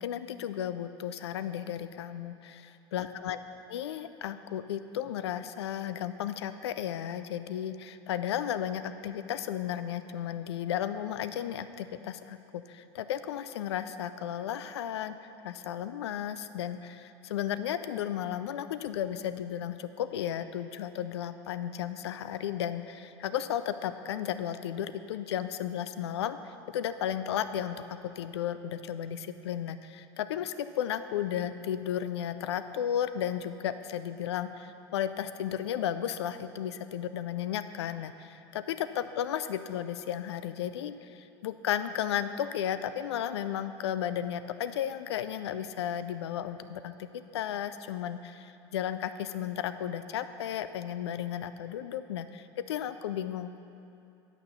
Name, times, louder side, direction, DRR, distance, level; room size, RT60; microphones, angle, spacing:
voice 1, 0.0-53.6, left 10 dB, 80° left, 12 dB, 0.4 m, -34 dB
9.0 x 5.8 x 6.8 m, 2.7 s
hypercardioid pair, 80°, 14 cm